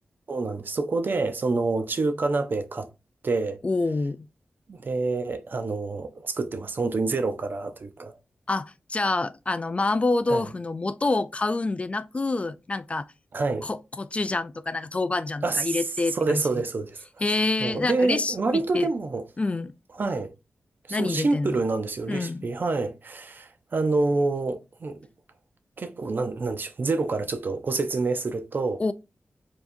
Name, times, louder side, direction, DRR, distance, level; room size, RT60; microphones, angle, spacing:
voice 1, 0.3-2.9 3.2-3.6 4.7-8.2 10.3-10.4 13.3-13.7 15.4-15.8 16.1-17.0 17.6-19.2 20.0-20.3 20.9-25.0 25.8-28.8, right 3 dB, 55° right, 0.6 m, -27 dB
voice 2, 3.6-4.2 8.5-13.1 13.6-16.6 17.2-18.9 19.4-19.7 20.9-21.6 22.1-22.5 28.8-28.9, left 3 dB, 30° left, 0.3 m, -27 dB
4.6 x 2.8 x 2.6 m
cardioid pair, 60°, 4 cm